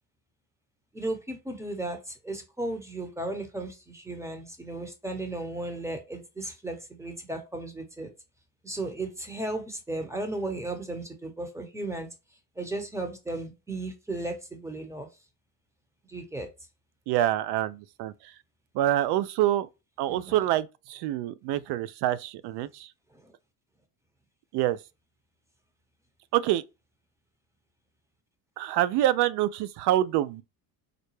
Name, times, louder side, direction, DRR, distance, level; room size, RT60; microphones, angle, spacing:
voice 1, 0.9-8.1 8.6-12.1 12.6-15.1 16.1-16.5 20.1-20.4, right 2 dB, 5° right, 0.9 m, -35 dB
voice 2, 17.1-18.1 18.8-19.7 20.0-22.9 24.5-24.8 26.3-26.6 28.6-30.4, right 13 dB, 60° right, 0.5 m, -26 dB
3.9 x 2.2 x 3.1 m
supercardioid pair, 90°, 45 cm